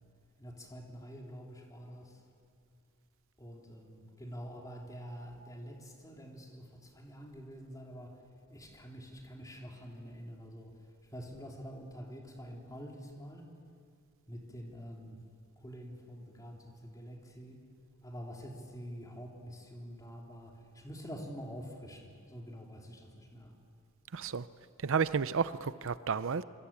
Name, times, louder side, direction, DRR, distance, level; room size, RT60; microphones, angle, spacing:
voice 1, 0.4-2.2 3.4-8.2 8.5-13.5 14.3-15.2 15.6-17.6 18.0-23.5, equal, 15° left, 1 dB, 3.5 m, -47 dB
voice 2, 24.1-24.5 24.8-26.4, right 6 dB, 65° right, 15 dB, 0.6 m, -31 dB
26.0 x 24.5 x 8.8 m, 2.3 s
head